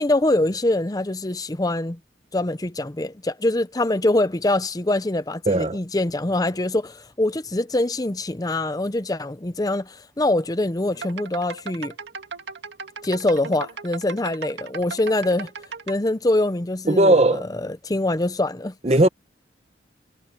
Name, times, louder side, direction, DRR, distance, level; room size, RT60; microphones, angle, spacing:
voice 1, 0.0-2.0 2.3-11.9 13.0-15.5 15.9-18.7, left 2 dB, 20° left, 0.7 m, -24 dB
voice 2, 5.5-5.8 16.9-17.4 18.8-19.1, right 1 dB, 35° right, 1.0 m, -17 dB
sound 1, 10.9-15.9, right 5 dB, 75° right, 2.1 m, -37 dB
head